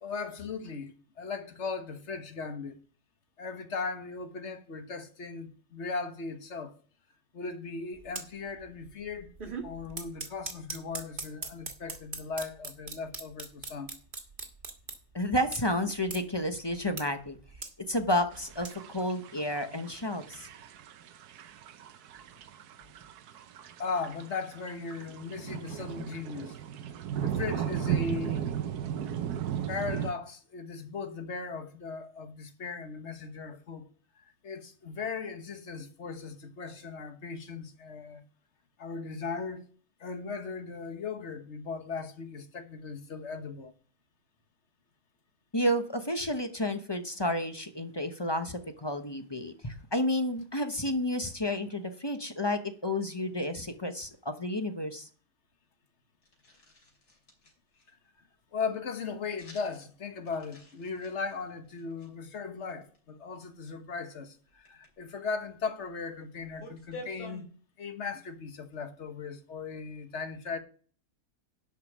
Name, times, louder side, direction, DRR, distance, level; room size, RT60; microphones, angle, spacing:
voice 1, 0.0-2.8 3.4-6.8 7.3-9.3 9.6-13.9 23.8-26.6 27.2-28.5 29.7-33.9 34.1-38.2 38.8-39.6 40.0-43.7 57.9-58.3 58.5-67.5 67.8-70.6, left 4 dB, 50° left, 1.5 m, -38 dB
sound 1, 8.0-8.2 8.7-8.9 9.2-15.0 15.5-15.6 16.0-16.2 16.7-17.0 17.3-18.7, right 4 dB, 35° right, 1.6 m, -39 dB
voice 2, 15.1-17.4 17.9-20.5 45.5-55.1, left 1 dB, 20° left, 0.8 m, -31 dB
sound 2, 18.3-30.1, right 9 dB, 85° right, 1.3 m, -36 dB
sound 3, 56.2-57.9 59.4-59.9 60.2-62.1 62.7-63.0 64.5-64.9 65.8-65.9 66.1-67.4, left 1 dB, 85° left, 3.6 m, -49 dB
11.0 x 5.1 x 7.3 m
omnidirectional pair, 1.6 m